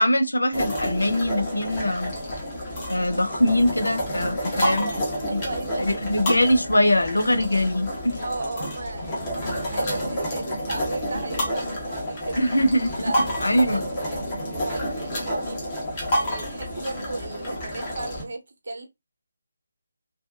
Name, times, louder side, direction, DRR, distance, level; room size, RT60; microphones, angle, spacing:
voice 1, 0.0-2.1 2.9-4.9 5.2-5.4 5.8-8.2 12.4-12.9 13.4-13.8, left 1 dB, 75° left, 0.6 m, -22 dB
sound 1, 0.5-18.2, equal, 25° left, 1.2 m, -29 dB
voice 2, 4.6-6.1 8.2-12.4 13.0-15.7 16.2-18.9, right 2 dB, 50° right, 0.8 m, -35 dB
2.6 x 2.4 x 2.4 m
figure-of-eight pair, 155°, 0 cm